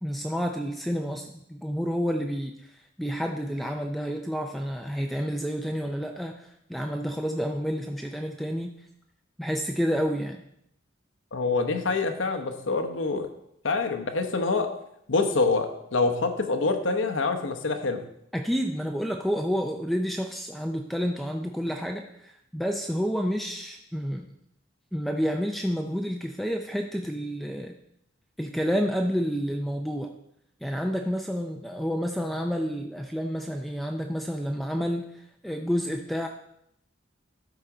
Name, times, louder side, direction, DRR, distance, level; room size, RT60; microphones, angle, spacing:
voice 1, 0.0-8.7 9.4-10.4 18.3-24.3 24.9-27.7 28.4-30.1 30.6-36.3, equal, ahead, 3 dB, 0.4 m, -29 dB
voice 2, 11.3-13.3 13.6-14.7 15.1-18.0, left 3 dB, 80° left, 6 dB, 1.0 m, -26 dB
12.0 x 4.0 x 4.9 m, 0.76 s
head